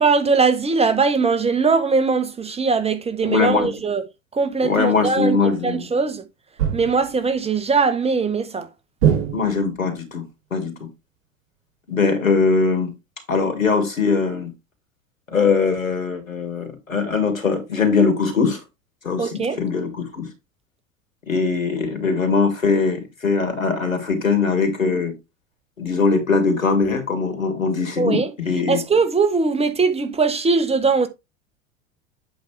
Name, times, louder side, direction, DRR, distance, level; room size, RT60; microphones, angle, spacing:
voice 1, 0.0-4.0 4.3-5.4 5.6-6.2 6.7-8.7 19.2-19.6 28.0-28.3 28.7-31.1, right 4 dB, 15° right, 1.3 m, -20 dB
voice 2, 3.2-3.7 4.6-5.8 9.3-10.2 10.5-10.7 11.9-12.9 13.3-14.5 15.3-18.6 19.0-20.3 21.3-25.1 25.8-28.8, left 4 dB, 85° left, 2.5 m, -21 dB
sound 1, 6.6-7.2 9.0-9.8, right 9 dB, 55° right, 2.6 m, -22 dB
8.3 x 5.3 x 3.3 m
figure-of-eight pair, 85°, 39 cm